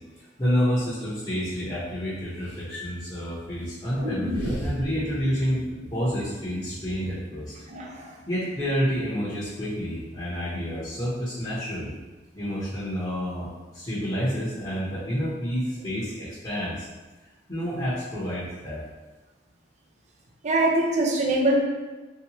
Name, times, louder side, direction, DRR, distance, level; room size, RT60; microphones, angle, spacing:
voice 1, 0.2-5.6 5.9-7.5 8.3-12.0 12.3-16.9 17.5-18.8, equal, 25° left, -11 dB, 0.8 m, -29 dB
sound 1, 4.0-8.0 8.3-8.4, equal, 70° right, 0.9 m, -34 dB
voice 2, 7.7-8.1 20.4-21.6, right 1 dB, 40° right, 0 dB, 0.4 m, -23 dB
3.1 x 2.8 x 2.9 m, 1.2 s
head